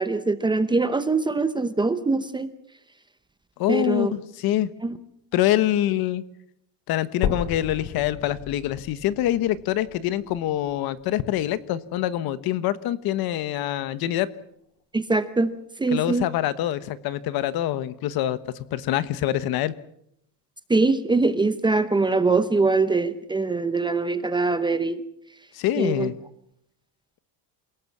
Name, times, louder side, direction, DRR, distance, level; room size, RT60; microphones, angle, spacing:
voice 1, 0.0-2.5 3.7-4.1 4.8-5.0 14.9-15.5 15.8-16.3 20.7-25.0 25.8-26.1, right 3 dB, 10° right, 11 dB, 0.8 m, -23 dB
voice 2, 3.6-4.7 5.3-6.2 6.9-14.3 15.9-18.4 18.7-19.7 25.5-26.1, left 13 dB, 55° left, 15 dB, 1.2 m, -25 dB
sound 1, 7.2-11.2 11.8-11.9 12.4-12.5 12.9-13.0 13.8-13.9, left 8 dB, 75° left, 3.1 m, -34 dB
28.0 x 18.0 x 7.3 m, 0.77 s
cardioid pair, 175°, 43 cm